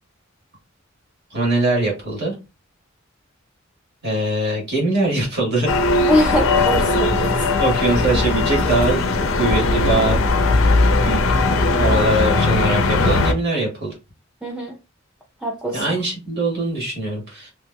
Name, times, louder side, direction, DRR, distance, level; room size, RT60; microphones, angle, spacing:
voice 1, 1.3-2.4 4.0-6.0 7.6-9.0 9.3-10.2 11.0-11.2 11.7-13.9 15.7-17.5, right 2 dB, 55° right, 1.7 m, -22 dB
sound 1, 5.7-13.3, left 3 dB, 70° left, 0.5 m, -18 dB
voice 2, 6.1-7.3 14.4-14.7 15.4-15.8, left 1 dB, 5° right, 0.5 m, -22 dB
3.1 x 3.1 x 2.2 m
head